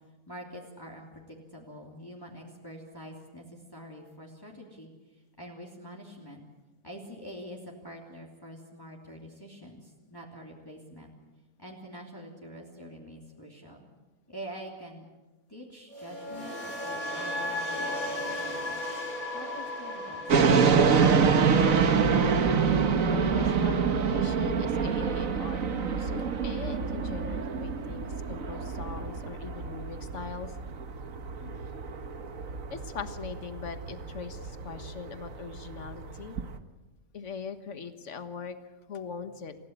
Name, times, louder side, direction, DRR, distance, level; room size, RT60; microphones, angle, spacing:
voice 1, 0.3-6.4 6.8-11.1 11.6-13.9 14.3-15.0 15.5-18.8 19.3-20.3, equal, 15° left, -2 dB, 3.0 m, -46 dB
sound 1, 15.9-24.0 24.3-24.6, left 1 dB, 70° left, 4.2 m, -36 dB
sound 2, 20.3-36.6, right 6 dB, 65° right, 1.7 m, -26 dB
voice 2, 21.4-22.0 23.1-30.6 31.4-31.6 32.7-36.4 37.1-38.6 38.9-39.6, left 5 dB, 55° left, 9 dB, 1.8 m, -41 dB
28.0 x 16.0 x 8.2 m, 1.1 s
omnidirectional pair, 1.5 m